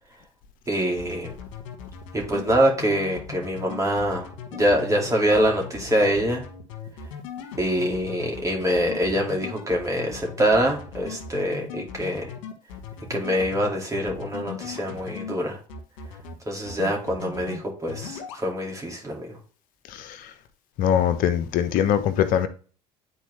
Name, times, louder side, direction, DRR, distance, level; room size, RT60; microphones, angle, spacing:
voice 1, 0.7-1.3 2.1-6.4 7.6-12.3 13.1-15.6 16.5-19.4, equal, 20° right, 2.4 m, -24 dB
sound 1, 1.0-15.3 15.7-16.3 16.7-17.6 17.9-18.4, left 6 dB, 80° left, 1.4 m, -38 dB
voice 2, 19.9-20.3 20.8-22.5, left 9 dB, 60° left, 1.0 m, -22 dB
9.0 x 4.3 x 3.2 m
hypercardioid pair, 80°, 16 cm